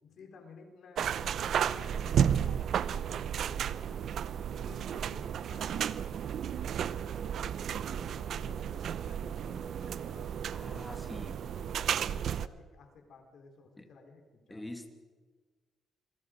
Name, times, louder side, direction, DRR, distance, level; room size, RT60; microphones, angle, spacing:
voice 1, 0.0-4.2 4.7-5.9 6.6-11.9 12.2-14.7, left 4 dB, 60° left, 4 dB, 4.1 m, -55 dB
sound 1, 1.0-12.5, right 8 dB, 65° right, 0.7 m, -33 dB
voice 2, 10.5-11.4 13.8-13.9 14.5-14.9, left 1 dB, 10° left, 6 dB, 2.6 m, -44 dB
28.0 x 22.0 x 5.2 m, 1.4 s
cardioid pair, 110°, 0 cm